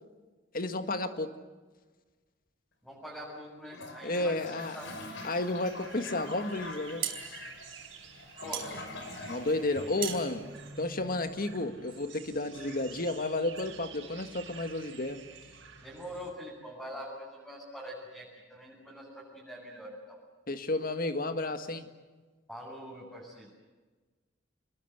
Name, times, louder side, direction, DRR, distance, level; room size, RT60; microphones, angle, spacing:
voice 1, 0.5-1.4 4.0-4.8 5.2-7.4 9.3-10.5 10.8-15.3 20.5-21.9, left 2 dB, 50° left, 8 dB, 1.8 m, -32 dB
voice 2, 2.8-4.9 8.4-8.8 9.7-10.2 15.8-20.2 22.5-23.5, equal, 5° left, -5 dB, 7.3 m, -44 dB
Toilet flush, 3.6-10.6, left 2 dB, 70° left, 5.1 m, -44 dB
sound 1, 5.6-16.3, right 5 dB, 70° right, 4.6 m, -50 dB
sound 2, 6.6-11.6, right 9 dB, 50° right, 4.5 m, -40 dB
29.5 x 21.5 x 8.0 m, 1.3 s
head